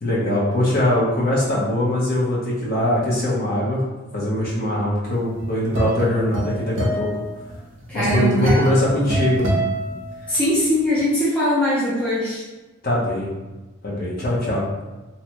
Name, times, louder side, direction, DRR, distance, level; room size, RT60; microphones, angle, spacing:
voice 1, 0.0-3.8 4.1-7.1 7.9-9.4 12.8-13.3 13.8-14.6, left 1 dB, 45° left, -6 dB, 0.8 m, -21 dB
sound 1, 5.1-10.6, right 1 dB, 60° right, 0.6 m, -26 dB
voice 2, 7.9-8.6 10.3-12.4, equal, 5° left, -10 dB, 0.6 m, -21 dB
2.7 x 2.2 x 2.8 m, 1.2 s
head